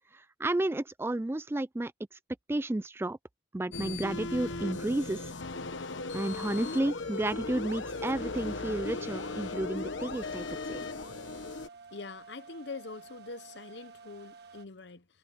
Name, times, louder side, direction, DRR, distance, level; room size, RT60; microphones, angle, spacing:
voice 1, 0.1-1.9 2.5-3.2 3.5-5.3 6.1-10.8, right 1 dB, 10° right, 0.3 m, -32 dB
sound 1, 3.7-11.7, left 3 dB, 75° left, 1.2 m, -37 dB
sound 2, 7.2-14.7, right 4 dB, 55° right, 1.7 m, -52 dB
voice 2, 11.9-15.1, left 3 dB, 60° left, 0.9 m, -44 dB
head